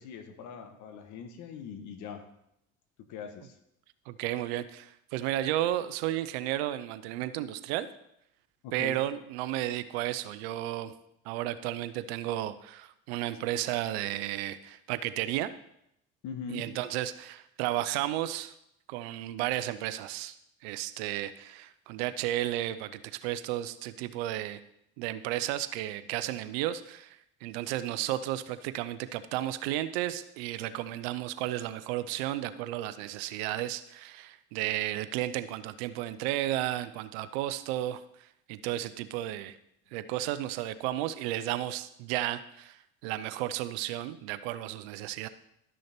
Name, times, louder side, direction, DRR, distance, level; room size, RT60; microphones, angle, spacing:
voice 1, 0.0-2.2 3.1-3.6 8.6-9.0 16.2-16.7, left 6 dB, 75° left, 6 dB, 1.5 m, -41 dB
voice 2, 4.1-7.9 8.7-10.9 11.3-15.5 16.5-18.5 18.9-20.3 20.6-24.6 25.0-38.0 38.5-39.6 39.9-45.3, right 14 dB, 90° right, 13 dB, 0.7 m, -33 dB
12.0 x 6.4 x 4.4 m, 0.79 s
supercardioid pair, 80°, 30 cm